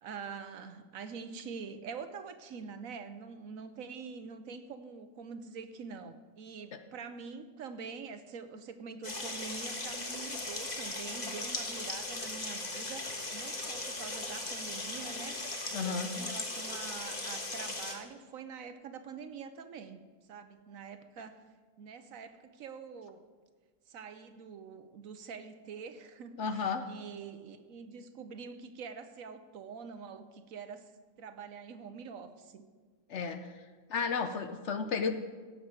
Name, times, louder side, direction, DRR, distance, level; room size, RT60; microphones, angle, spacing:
voice 1, 0.0-20.0 20.3-21.5 21.8-23.2 23.9-30.9 31.2-32.7, right 5 dB, 65° right, 10 dB, 1.1 m, -45 dB
sound 1, 9.0-17.9, left 2 dB, 30° left, 1.4 m, -38 dB
voice 2, 15.7-16.1 26.4-26.9 33.1-33.6 33.9-35.1, left 5 dB, 55° left, 8 dB, 0.9 m, -33 dB
16.5 x 7.7 x 4.7 m, 1.5 s
omnidirectional pair, 1.6 m